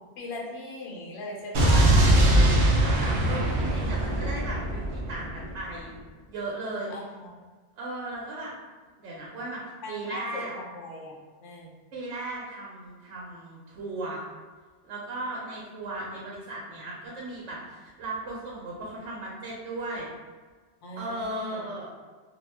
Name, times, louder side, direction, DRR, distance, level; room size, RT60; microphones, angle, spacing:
voice 1, 0.0-1.9 6.9-7.3 9.8-11.8 20.8-21.7, left 2 dB, 85° left, -2 dB, 0.9 m, -39 dB
Explosion, 1.5-5.6, right 1 dB, 60° right, 0.6 m, -22 dB
voice 2, 1.7-6.0 6.3-6.9 7.8-8.5 9.0-9.6 9.9-10.5 11.9-14.2 14.8-20.1 21.0-22.0, right 2 dB, 90° right, -4 dB, 0.9 m, -36 dB
2.3 x 2.1 x 3.2 m, 1.4 s
omnidirectional pair, 1.2 m